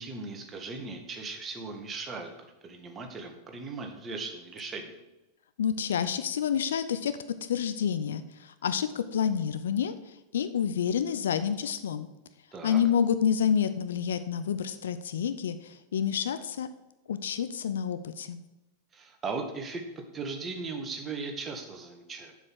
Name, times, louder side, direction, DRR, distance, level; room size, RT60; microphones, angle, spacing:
voice 1, 0.0-4.9 12.5-12.8 18.9-22.3, right 4 dB, 20° right, 3 dB, 1.8 m, -38 dB
voice 2, 5.6-7.2 7.5-9.9 10.3-12.1 12.6-16.7 17.1-18.4, left 8 dB, 65° left, 12 dB, 0.6 m, -28 dB
7.5 x 6.6 x 7.7 m, 0.96 s
figure-of-eight pair, 90°, 0 cm